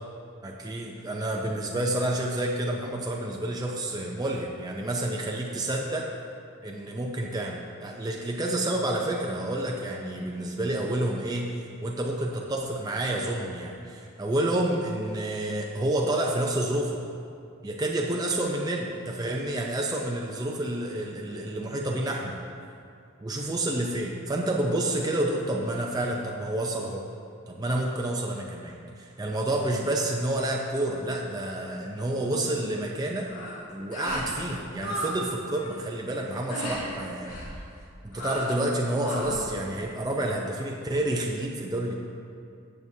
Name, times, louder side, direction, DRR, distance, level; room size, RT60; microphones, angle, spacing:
voice 1, 0.4-6.1 6.6-11.5 11.8-17.0 17.6-22.4 23.2-27.0 27.5-33.3 33.7-37.4 38.0-41.9, right 1 dB, 20° right, -1 dB, 0.5 m, -29 dB
sound 1, 33.2-33.6 33.9-34.3 34.6-35.2 35.4-35.8 36.5-36.8 37.3-37.5 38.1-38.6 39.0-39.4, equal, 90° left, 2.1 m, -34 dB
14.5 x 8.0 x 2.7 m, 2.5 s
head